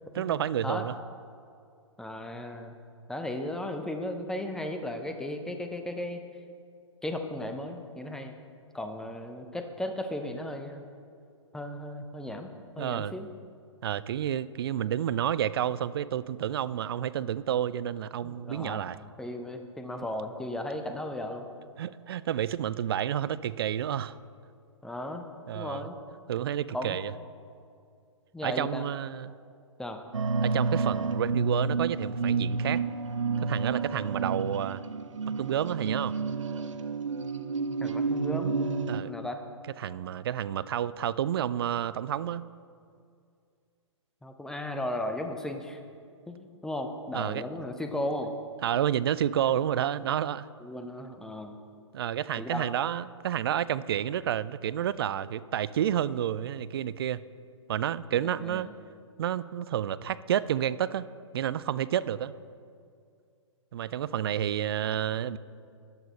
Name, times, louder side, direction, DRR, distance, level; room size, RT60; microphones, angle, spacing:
voice 1, 0.2-0.9 12.8-13.1 13.8-19.0 21.8-24.2 25.5-25.9 26.3-27.1 28.4-29.3 30.4-32.8 33.4-34.8 35.4-36.2 38.9-39.1 39.8-42.4 47.1-47.4 48.6-50.5 51.9-57.2 57.7-58.7 59.2-62.3 63.7-65.4, right 10 dB, 50° right, 17 dB, 0.4 m, -30 dB
voice 2, 2.0-2.7 3.1-6.2 7.0-8.4 8.7-10.8 11.5-13.3 18.2-18.9 19.2-21.4 24.8-25.2 25.5-26.0 26.7-27.0 28.3-28.8 29.8-30.0 37.8-38.6 39.1-39.4 44.2-45.8 46.3-48.3 50.6-51.6 52.4-52.7 58.1-58.7, left 1 dB, 5° left, 6 dB, 0.7 m, -35 dB
sound 1, 30.1-39.0, right 4 dB, 75° right, 0.8 m, -30 dB
13.5 x 10.0 x 4.2 m, 2.3 s
figure-of-eight pair, 120°, 16 cm